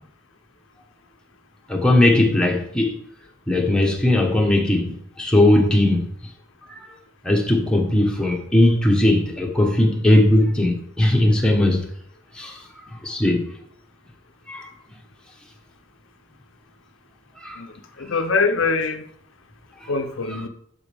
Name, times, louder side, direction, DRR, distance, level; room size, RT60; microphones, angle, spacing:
voice 1, 1.7-3.0 3.5-6.1 6.8-6.9 7.2-11.8 12.4-12.6 13.0-13.4 14.5-14.7 17.4-17.6 19.8-19.9, left 1 dB, 5° left, 1.3 m, -18 dB
voice 2, 18.0-19.0 19.9-20.5, left 4 dB, 70° left, 0.7 m, -23 dB
12.0 x 5.3 x 3.5 m
head